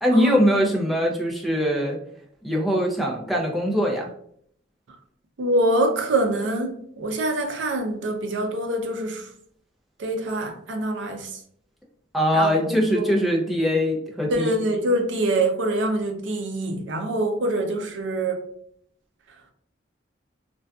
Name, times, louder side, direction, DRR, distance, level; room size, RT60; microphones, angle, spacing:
voice 1, 0.0-2.0 2.4-4.1 12.1-14.5, equal, ahead, 0.4 m, -22 dB
voice 2, 5.4-9.3 10.0-11.3 12.3-13.2 14.3-18.4, right 1 dB, 70° right, 0.5 m, -25 dB
2.5 x 2.2 x 2.3 m
head